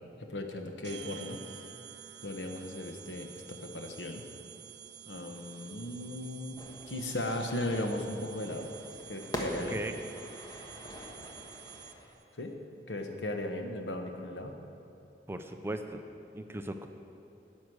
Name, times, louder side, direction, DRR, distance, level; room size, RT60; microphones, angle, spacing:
voice 1, 0.2-1.4 2.2-4.2 5.1-6.6 6.9-8.7 9.1-9.8 12.4-12.5 12.9-14.5, left 1 dB, 90° left, 4 dB, 1.1 m, -36 dB
sound 1, 0.8-12.2, right 10 dB, 75° right, 0.5 m, -50 dB
Fire / Fireworks, 6.6-12.1, equal, 25° left, 1.3 m, -43 dB
voice 2, 15.3-16.0 16.3-16.9, right 1 dB, 15° right, 6 dB, 0.5 m, -37 dB
10.0 x 9.4 x 6.3 m, 2.8 s
head